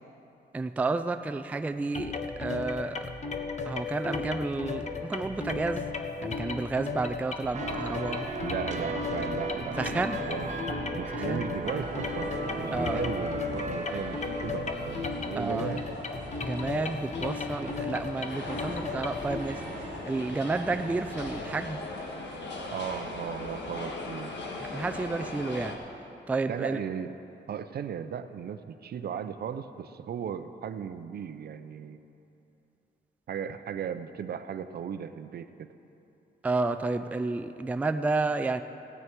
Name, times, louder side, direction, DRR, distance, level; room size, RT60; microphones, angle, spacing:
voice 1, 0.5-2.1 2.4-3.0 3.6-5.9 6.2-8.3 9.8-10.2 11.1-11.5 12.7-13.0 15.4-15.7 16.4-19.6 20.0-21.8 24.6-25.8 26.3-26.8 36.4-38.6, right 3 dB, 10° right, 8 dB, 0.3 m, -31 dB
sound 1, 1.9-19.4, left 4 dB, 40° left, 0.8 m, -35 dB
sound 2, 7.5-21.6, right 3 dB, 40° right, 0.9 m, -38 dB
voice 2, 8.4-10.5 10.9-15.8 22.7-24.3 26.5-27.2 27.5-32.0 33.3-35.7, right 8 dB, 60° right, 11 dB, 0.6 m, -36 dB
sound 3, 11.6-25.8, left 2 dB, 75° left, 1.5 m, -40 dB
16.5 x 9.8 x 4.6 m, 2.9 s
wide cardioid pair, 135°, 18 cm